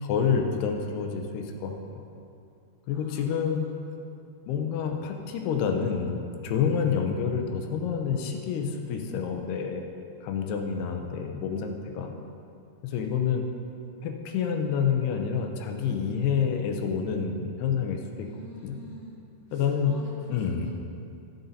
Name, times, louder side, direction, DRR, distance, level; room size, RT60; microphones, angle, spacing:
voice 1, 0.0-2.0 2.9-3.6 4.5-9.8 10.2-12.1 12.8-13.4 14.0-18.3 18.6-18.8 19.5-19.9 20.3-20.7, left 7 dB, 80° left, 4 dB, 2.8 m, -28 dB
voice 2, 2.9-3.7 6.7-6.8 12.9-13.0 18.2-19.2 19.5-20.7, right 1 dB, 15° left, -7 dB, 0.6 m, -49 dB
13.5 x 7.9 x 4.1 m, 2.5 s
omnidirectional pair, 4.7 m